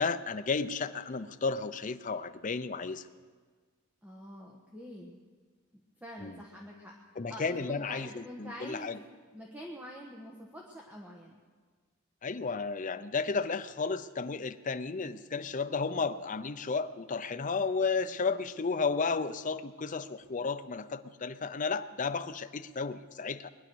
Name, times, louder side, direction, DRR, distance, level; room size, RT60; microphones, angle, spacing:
voice 1, 0.0-3.0 6.2-6.3 7.2-9.0 12.2-23.5, left 4 dB, 40° left, 10 dB, 0.6 m, -33 dB
voice 2, 4.0-5.2 6.0-6.9 7.3-9.1 9.3-11.4, equal, 10° right, -2 dB, 1.3 m, -46 dB
21.0 x 10.5 x 6.3 m, 1.5 s
head